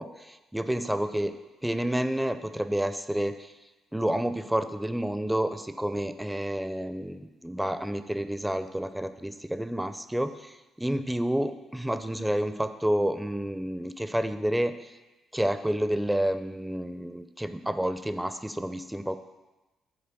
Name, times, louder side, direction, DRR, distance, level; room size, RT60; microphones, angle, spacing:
voice 1, 0.0-1.3 1.6-3.5 3.9-14.7 15.3-19.2, right 1 dB, 5° right, 10 dB, 0.5 m, -29 dB
6.9 x 4.3 x 6.7 m, 1.1 s
cardioid pair, 90°, 0 cm